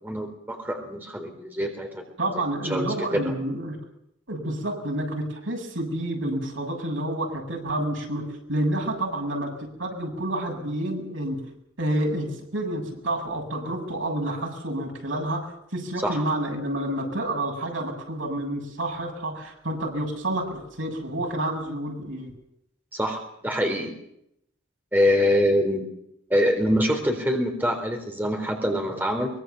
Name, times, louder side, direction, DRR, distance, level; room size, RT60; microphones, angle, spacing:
voice 1, 0.0-2.0 2.7-2.9 3.1-3.3 16.0-16.2 22.9-23.9 24.9-25.9 26.3-29.3, equal, 10° right, 3 dB, 3.9 m, -24 dB
voice 2, 2.2-3.8 4.3-11.4 11.8-15.4 15.7-22.3, right 1 dB, 75° right, 2 dB, 7.5 m, -29 dB
24.0 x 23.0 x 7.1 m, 0.77 s
head